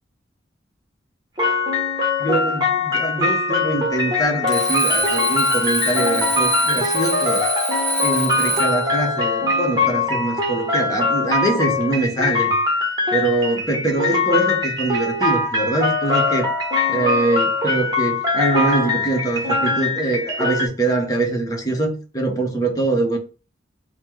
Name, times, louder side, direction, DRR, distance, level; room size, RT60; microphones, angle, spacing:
sound 1, 1.4-20.7, left 3 dB, 20° right, 1.1 m, -22 dB
voice 1, 2.2-7.4 8.0-12.5 13.1-16.5 16.9-23.2, right 2 dB, 20° left, 0.9 m, -23 dB
Alarm, 4.5-8.9, equal, 5° left, 1.5 m, -25 dB
4.1 x 2.1 x 4.4 m
head